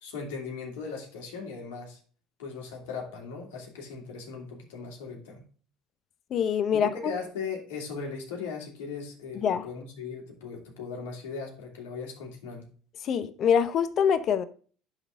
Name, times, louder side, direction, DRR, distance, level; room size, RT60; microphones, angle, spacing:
voice 1, 0.0-2.0 2.4-5.4 6.7-12.7, left 5 dB, 80° left, 2.8 m, -38 dB
voice 2, 6.3-6.9 9.4-9.7 13.0-14.4, left 7 dB, 50° left, 0.8 m, -24 dB
10.5 x 4.1 x 3.6 m
hypercardioid pair, 80°, 0 cm